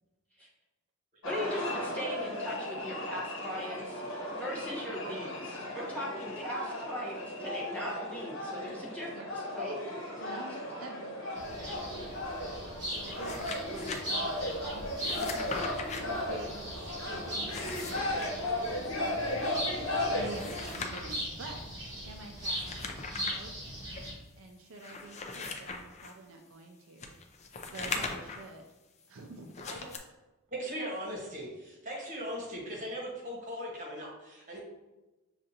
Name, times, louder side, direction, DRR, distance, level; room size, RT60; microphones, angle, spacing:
sound 1, 1.2-20.8, left 1 dB, 70° left, 1.1 m, -36 dB
voice 1, 1.2-9.1 9.5-9.8, equal, 5° left, -7 dB, 1.2 m, -39 dB
voice 2, 8.6-9.3 9.6-19.8 20.1-23.5 24.3-27.2 27.6-28.7 29.1-30.0 30.6-30.9, right 2 dB, 70° right, 3 dB, 0.4 m, -49 dB
sound 2, 11.3-24.1, equal, 20° right, 1.3 m, -40 dB
sound 3, 13.0-14.0 15.0-16.0 17.3-18.3 20.1-21.2 22.4-23.4 23.9-24.0 24.7-26.1 27.0-28.5 29.5-30.0, left 4 dB, 30° left, 0.4 m, -39 dB
voice 3, 30.5-34.6, equal, 40° right, -3 dB, 1.3 m, -39 dB
6.3 x 2.5 x 2.8 m, 1.1 s
head